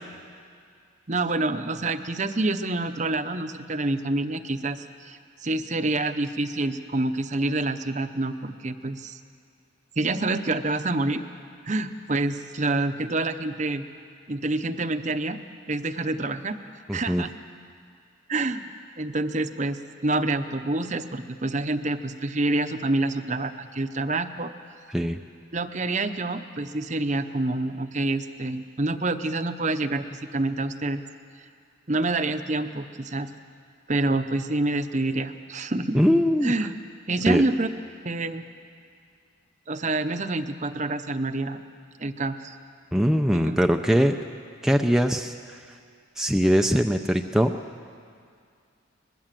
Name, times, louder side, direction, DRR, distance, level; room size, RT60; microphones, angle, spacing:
voice 1, 1.1-9.2 10.0-11.2 11.7-13.9 14.3-15.4 15.7-16.6 16.9-17.3 18.3-18.7 19.0-24.5 25.5-31.0 31.9-33.3 33.9-36.0 36.4-36.7 37.1-37.7 38.0-38.4 39.7-41.6 42.0-42.6 43.3-43.6, right 2 dB, 35° right, 10 dB, 0.8 m, -27 dB
voice 2, 16.9-17.2 24.9-25.2 35.9-36.5 37.3-37.4 42.9-44.2 44.6-45.6 46.2-47.6, equal, ahead, 4 dB, 0.5 m, -21 dB
23.5 x 20.5 x 7.6 m, 2.3 s
head